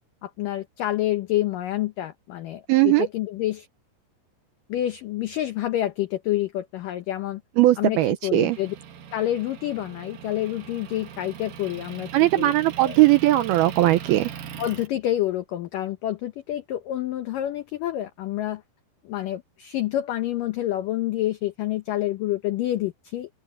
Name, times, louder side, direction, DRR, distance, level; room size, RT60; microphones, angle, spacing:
voice 1, 0.2-3.7 4.7-7.4 7.8-8.8 9.1-12.1 12.4-12.5 12.8-13.0 14.6-18.6 19.0-23.3, left 13 dB, 85° left, 1.9 m, -28 dB
voice 2, 2.7-3.1 7.6-8.6 12.1-14.3, right 16 dB, 80° right, 2.3 m, -19 dB
Motor vehicle (road) / Engine, 8.5-14.9, right 8 dB, 55° right, 2.9 m, -40 dB
open air
omnidirectional pair, 5.2 m